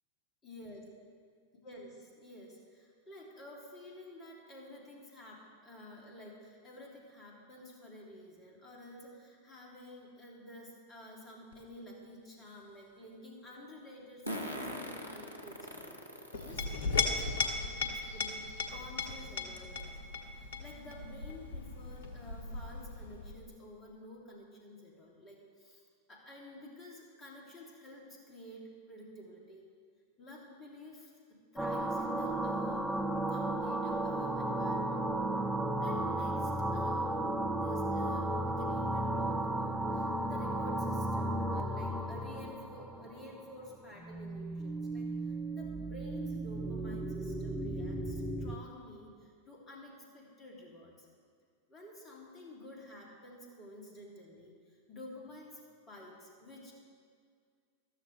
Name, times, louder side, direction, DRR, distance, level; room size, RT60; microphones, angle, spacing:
voice 1, 0.4-0.8 1.6-20.0 20.4-25.8 26.1-29.6 30.2-31.1 31.5-32.9 33.3-35.1 35.8-51.1 51.7-55.6 55.9-56.7, left 1 dB, 25° left, -2 dB, 2.7 m, -51 dB
Fart, 11.5-11.6 14.3-16.5 17.2-17.3 18.6-18.7 19.0-19.1 19.6-19.8, equal, 85° right, 1.2 m, -41 dB
Chink clink, 16.3-23.4, left 4 dB, 60° left, 1.0 m, -37 dB
sound 1, 31.6-43.5 44.0-48.6, right 1 dB, ahead, 0.7 m, -34 dB
14.0 x 13.5 x 3.2 m, 2.1 s
figure-of-eight pair, 90°, 0 cm